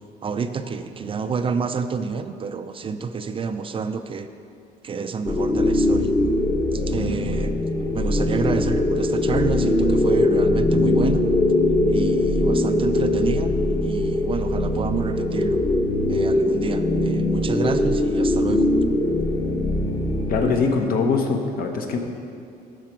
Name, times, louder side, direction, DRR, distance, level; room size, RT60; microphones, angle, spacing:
voice 1, 0.2-4.3 4.8-6.1 6.7-7.6 7.9-11.2 11.9-13.5 13.8-15.6 16.1-18.6, right 5 dB, 30° right, 9 dB, 0.4 m, -29 dB
sound 1, 5.2-20.5, left 1 dB, 20° left, 0.9 m, -21 dB
voice 2, 20.3-22.0, left 4 dB, 60° left, 3 dB, 1.1 m, -22 dB
12.5 x 5.0 x 4.6 m, 2.4 s
cardioid pair, 110°, 17 cm